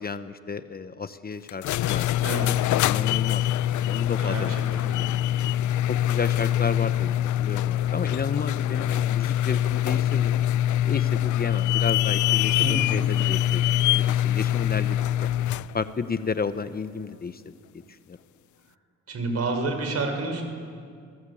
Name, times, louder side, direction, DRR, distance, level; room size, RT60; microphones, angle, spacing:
voice 1, 0.0-2.1 2.9-3.5 3.8-5.0 5.9-10.4 10.9-15.3 15.7-17.5 18.1-18.2, left 5 dB, 30° left, 11 dB, 1.0 m, -32 dB
sound 1, 1.5-15.7, left 12 dB, 75° left, 0.6 m, -24 dB
voice 2, 4.2-4.9 12.6-13.0 19.1-20.4, right 3 dB, 55° right, 5 dB, 6.1 m, -29 dB
26.5 x 19.5 x 8.7 m, 2.2 s
cardioid pair, 90°, 30 cm